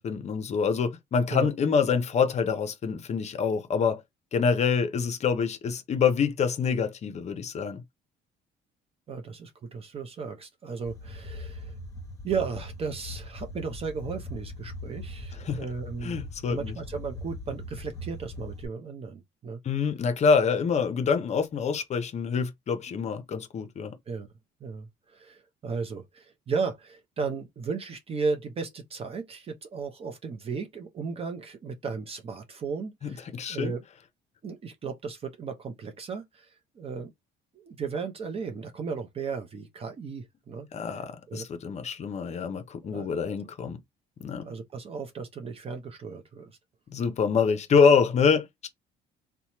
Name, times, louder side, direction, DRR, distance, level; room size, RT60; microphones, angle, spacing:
voice 1, 0.0-4.0 4.3-7.8 15.4-15.6 16.0-16.7 19.6-23.9 33.0-33.7 40.7-43.8 44.2-44.4 46.9-48.7, left 5 dB, 40° left, 0.6 m, -26 dB
voice 2, 9.1-11.7 12.2-16.2 16.5-19.6 22.9-23.0 24.1-24.3 24.6-33.8 34.4-37.1 37.5-41.5 42.9-43.3 44.4-46.6, right 5 dB, 35° right, 0.5 m, -35 dB
sound 1, 10.9-18.7, left 1 dB, 20° left, 1.0 m, -40 dB
2.9 x 2.1 x 2.9 m
cardioid pair, 110°, 17 cm